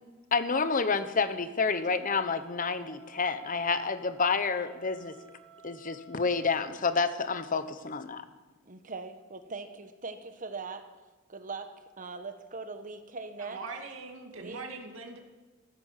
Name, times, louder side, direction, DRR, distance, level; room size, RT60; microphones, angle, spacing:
voice 1, 0.3-5.1 5.6-8.2, left 4 dB, 40° left, 11 dB, 1.0 m, -29 dB
Wind instrument woodwind instrument, 1.6-6.7, right 1 dB, 70° right, 4.7 m, -54 dB
voice 2, 8.7-10.9 11.3-13.6 14.3-14.6, right 4 dB, 40° right, 8 dB, 1.2 m, -41 dB
voice 3, 13.5-15.2, right 3 dB, 90° right, 2 dB, 2.2 m, -41 dB
14.5 x 12.5 x 7.4 m, 1.2 s
head